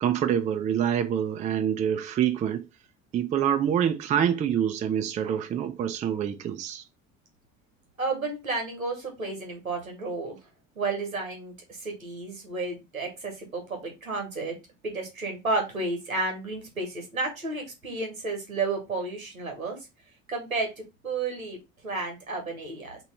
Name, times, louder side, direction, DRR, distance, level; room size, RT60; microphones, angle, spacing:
voice 1, 0.0-2.7 3.1-6.8, right 9 dB, 20° right, 0.4 m, -26 dB
voice 2, 8.0-10.4 10.8-14.6 14.8-19.8 20.3-20.7 21.0-21.6 21.8-23.0, right 3 dB, 85° right, 1.2 m, -32 dB
3.0 x 2.9 x 4.2 m
figure-of-eight pair, 60°, 40 cm